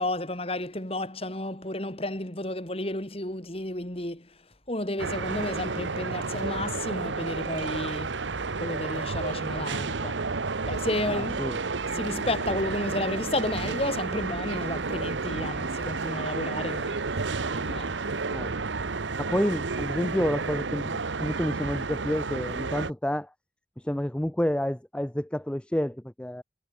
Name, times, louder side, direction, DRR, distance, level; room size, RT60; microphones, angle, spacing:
voice 1, 0.0-4.3 4.7-8.1 8.6-10.2 10.7-11.4 11.9-17.3 17.5-17.9, left 1 dB, 30° left, 3.3 m, -32 dB
sound 1, 5.0-22.9, right 4 dB, 90° right, 1.1 m, -31 dB
voice 2, 11.1-11.6 18.3-18.5 19.2-23.3 23.8-26.4, equal, 5° left, 0.4 m, -29 dB
head